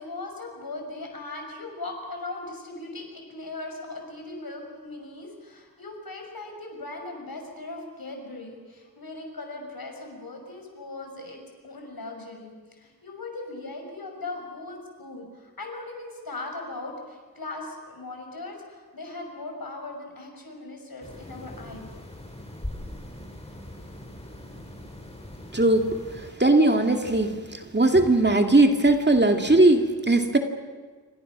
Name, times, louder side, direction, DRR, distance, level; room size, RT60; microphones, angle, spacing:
voice 1, 0.0-21.9, left 2 dB, 75° left, 2 dB, 6.0 m, -39 dB
sound 1, 21.0-26.3, left 1 dB, 15° left, 6.0 m, -41 dB
voice 2, 25.5-26.0 26.4-30.4, right 2 dB, 30° right, 4 dB, 2.4 m, -19 dB
27.5 x 25.5 x 6.2 m, 1.5 s
cardioid pair, 50°, 36 cm